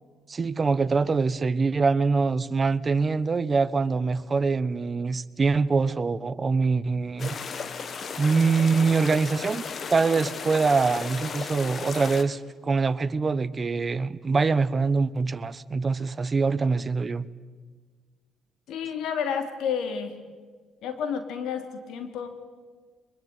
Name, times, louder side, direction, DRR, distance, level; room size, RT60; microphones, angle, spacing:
voice 1, 0.3-7.4 8.2-9.6 9.9-17.3, right 4 dB, 35° right, 16 dB, 1.1 m, -24 dB
sound 1, 7.2-12.2, left 5 dB, 45° left, 1.8 m, -35 dB
voice 2, 18.7-20.2 20.8-22.3, left 7 dB, 75° left, 7 dB, 3.1 m, -30 dB
24.0 x 21.5 x 9.6 m, 1.5 s
supercardioid pair, 80°, 0 cm